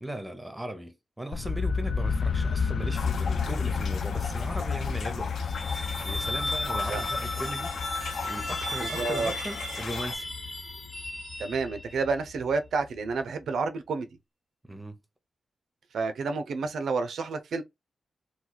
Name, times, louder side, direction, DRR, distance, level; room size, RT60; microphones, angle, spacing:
voice 1, 0.0-5.3 6.0-7.8 8.2-10.3 14.6-15.0, right 1 dB, 10° right, 0.6 m, -38 dB
sound 1, 1.3-13.1, left 5 dB, 60° left, 0.3 m, -32 dB
sound 2, 2.9-10.1, left 5 dB, 80° left, 0.7 m, -39 dB
sound 3, 5.3-12.0, left 1 dB, 20° left, 0.9 m, -35 dB
voice 2, 8.8-9.3 11.4-14.1 15.9-17.6, right 4 dB, 85° right, 0.5 m, -30 dB
3.0 x 2.3 x 3.8 m
wide cardioid pair, 150°, 0 cm